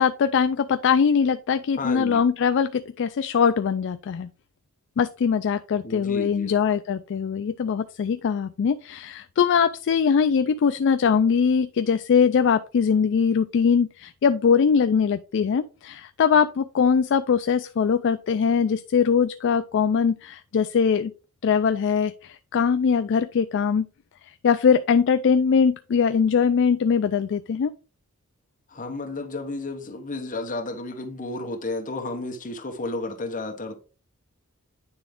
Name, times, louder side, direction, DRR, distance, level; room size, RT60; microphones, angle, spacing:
voice 1, 0.0-4.3 5.0-21.1 21.4-23.9 24.4-27.7, left 6 dB, 55° left, 0.3 m, -21 dB
voice 2, 1.8-2.2 5.8-6.6 28.7-33.8, left 2 dB, 35° left, 1.1 m, -32 dB
9.6 x 3.5 x 3.6 m
head